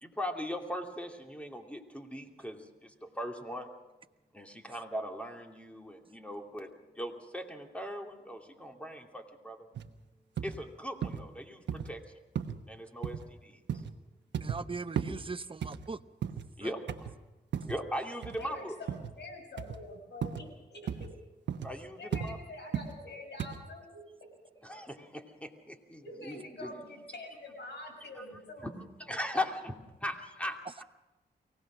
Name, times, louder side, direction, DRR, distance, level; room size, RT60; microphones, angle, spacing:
voice 1, 0.0-3.7 4.3-6.7 7.0-9.7 10.4-12.0 12.7-13.6 16.6-17.1 17.7-18.8 21.6-22.4 24.6-26.7 28.2-28.3 28.6-30.8, equal, 5° left, 3 dB, 2.7 m, -39 dB
sound 1, 9.8-9.9 10.4-10.6 11.0-11.2 11.7-11.9 12.4-12.6 13.0-13.3 13.7-13.9 14.3-14.6 15.0-15.2 15.6-16.5 16.9-17.2 17.5-17.8 18.2-18.5 18.9-19.1 19.6-19.8 20.2-20.5 20.9-21.1 21.5-21.7 22.1-22.3 22.7-23.0 23.4-23.6, right 8 dB, 85° right, 1.1 m, -35 dB
voice 2, 14.4-16.0 16.6-16.7, right 4 dB, 30° right, 12 dB, 0.8 m, -40 dB
voice 3, 18.2-20.9 22.0-24.0 26.0-28.7, left 2 dB, 75° left, 3 dB, 6.3 m, -46 dB
23.5 x 17.5 x 6.3 m, 1.1 s
cardioid pair, 60°, 18 cm